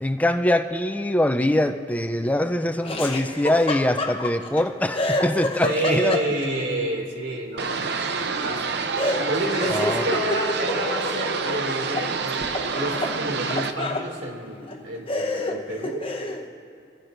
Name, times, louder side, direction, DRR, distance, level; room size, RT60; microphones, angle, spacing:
voice 1, 0.0-6.2 9.7-10.0, left 1 dB, 10° left, 8 dB, 0.5 m, -23 dB
Laughter, 2.8-4.6 4.9-6.6 9.0-12.1 12.4-14.1 14.7-14.8 15.1-16.4, left 2 dB, 30° left, 1.0 m, -29 dB
voice 2, 5.6-8.8 9.1-12.4 12.7-16.1, right 1 dB, 80° right, 0 dB, 2.5 m, -29 dB
sound 1, 7.6-13.7, right 4 dB, 65° right, 0.7 m, -28 dB
24.0 x 15.0 x 2.6 m, 2.3 s
head